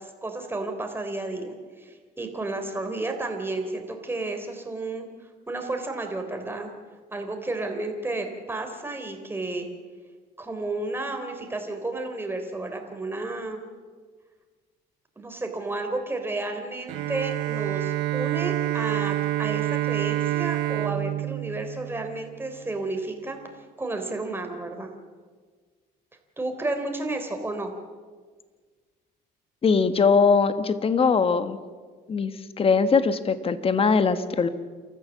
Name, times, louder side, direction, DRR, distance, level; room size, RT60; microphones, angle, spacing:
voice 1, 0.0-5.1 5.5-6.7 7.1-9.7 10.4-13.6 15.2-23.4 23.8-24.9 26.4-27.7, right 2 dB, 15° right, 4 dB, 3.6 m, -32 dB
Bowed string instrument, 16.9-22.6, right 15 dB, 85° right, 0.6 m, -27 dB
voice 2, 29.6-31.6 32.1-34.5, left 5 dB, 35° left, 11 dB, 1.5 m, -21 dB
28.0 x 14.0 x 7.3 m, 1.5 s
cardioid pair, 110°, 17 cm